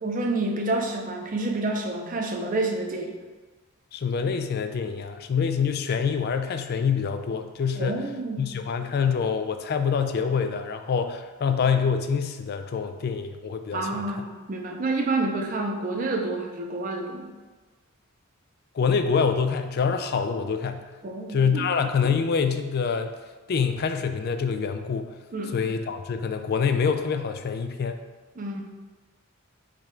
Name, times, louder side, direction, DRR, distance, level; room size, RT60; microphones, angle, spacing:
voice 1, 0.0-3.1 7.7-8.5 13.7-17.3 21.0-21.7 25.3-25.6 28.4-28.6, right 2 dB, 40° right, 2 dB, 0.5 m, -28 dB
voice 2, 3.9-8.0 8.4-14.1 18.7-20.8 21.3-23.2 23.5-25.2 25.5-28.0, left 6 dB, 45° left, 8 dB, 0.3 m, -26 dB
5.0 x 2.3 x 4.3 m, 1.3 s
head